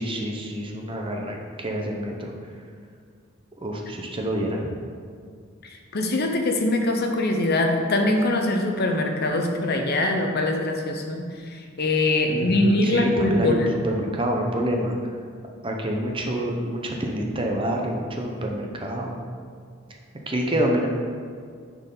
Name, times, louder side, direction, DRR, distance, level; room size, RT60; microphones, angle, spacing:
voice 1, 0.0-2.3 3.6-4.7 12.3-14.9 15.6-19.2 20.3-20.9, right 1 dB, 25° right, 1 dB, 0.7 m, -27 dB
voice 2, 5.6-13.7, left 2 dB, 50° left, 3 dB, 0.7 m, -23 dB
10.0 x 4.5 x 3.9 m, 2.1 s
head